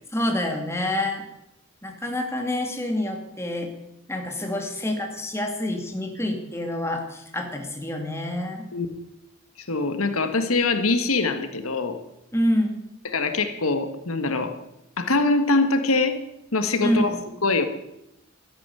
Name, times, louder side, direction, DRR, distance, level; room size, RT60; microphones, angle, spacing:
voice 1, 0.1-1.2 1.8-3.7 4.1-8.6 12.3-12.8 16.8-17.2, left 1 dB, 10° left, 3 dB, 2.4 m, -27 dB
voice 2, 9.7-12.0 13.0-14.5 15.0-16.2 16.5-17.1 17.4-17.7, left 3 dB, 85° left, 8 dB, 1.6 m, -23 dB
12.5 x 11.5 x 9.8 m, 0.84 s
head